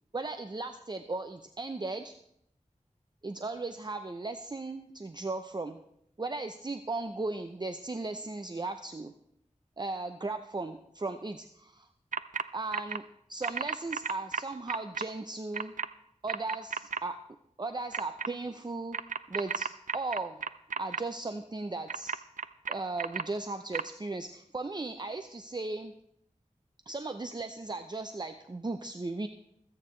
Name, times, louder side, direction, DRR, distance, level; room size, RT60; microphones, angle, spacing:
voice 1, 0.1-2.2 3.2-5.8 6.2-9.1 9.8-11.9 12.5-13.0 13.3-15.7 16.2-17.2 17.6-19.0 19.3-20.4 20.8-22.1 22.7-25.9 26.9-29.3, right 3 dB, 35° right, 8 dB, 0.6 m, -36 dB
sound 1, 12.1-12.4 12.7-13.0 13.4-15.0 15.5-15.9 16.3-17.0 17.9-18.3 18.9-21.0 21.9-23.2 23.7-23.8, right 6 dB, 85° right, 0.4 m, -33 dB
25.0 x 8.8 x 3.2 m, 0.73 s
wide cardioid pair, 60°, 13 cm